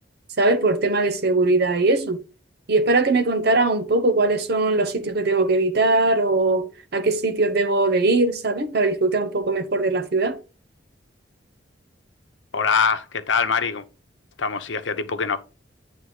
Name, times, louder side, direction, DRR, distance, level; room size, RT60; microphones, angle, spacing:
voice 1, 0.4-2.2 2.7-6.7 6.9-10.4, right 2 dB, 60° right, 1.0 m, -20 dB
voice 2, 12.5-13.8 14.4-15.4, left 5 dB, 80° left, 0.9 m, -23 dB
9.4 x 3.4 x 4.8 m
head